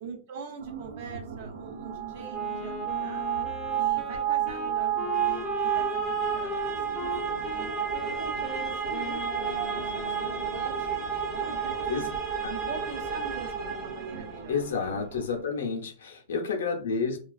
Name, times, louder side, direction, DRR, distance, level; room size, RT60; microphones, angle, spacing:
voice 1, 0.0-3.3 3.8-12.1 12.5-15.0, right 5 dB, 60° right, 4 dB, 0.7 m, -43 dB
sound 1, 0.6-15.4, right 5 dB, 85° right, 0.3 m, -44 dB
sound 2, 1.8-14.6, right 8 dB, 25° right, 0.6 m, -31 dB
Wind instrument woodwind instrument, 2.3-10.8, left 5 dB, 30° left, 0.4 m, -39 dB
voice 2, 14.5-17.2, left 5 dB, 85° left, 3 dB, 0.6 m, -30 dB
2.4 x 2.3 x 2.3 m, 0.39 s
hypercardioid pair, 120°, 0 cm